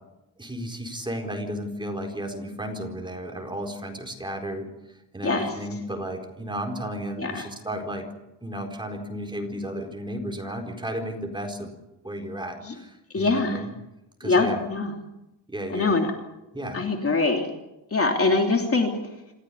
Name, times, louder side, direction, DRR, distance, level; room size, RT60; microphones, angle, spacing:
voice 1, 0.4-8.0 8.4-11.7 12.0-13.7 14.2-14.6 15.5-16.0 16.5-16.8, equal, 10° right, 2 dB, 4.3 m, -33 dB
voice 2, 13.1-13.6 14.2-14.9 15.7-16.1 16.7-17.5 17.9-18.9, left 3 dB, 30° left, 3 dB, 3.1 m, -23 dB
28.0 x 15.5 x 10.0 m, 0.94 s
cardioid pair, 150°, 46 cm